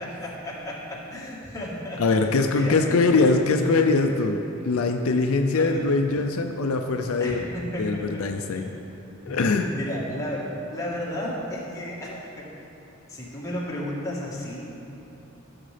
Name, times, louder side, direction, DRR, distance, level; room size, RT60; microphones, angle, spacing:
voice 1, 0.0-2.8 5.5-5.9 7.2-8.6 9.3-12.5 13.1-14.7, left 1 dB, 15° left, -6 dB, 1.5 m, -33 dB
voice 2, 2.0-7.5 7.8-8.7 9.3-9.7, left 3 dB, 70° left, 5 dB, 0.5 m, -22 dB
13.5 x 6.5 x 3.4 m, 2.9 s
head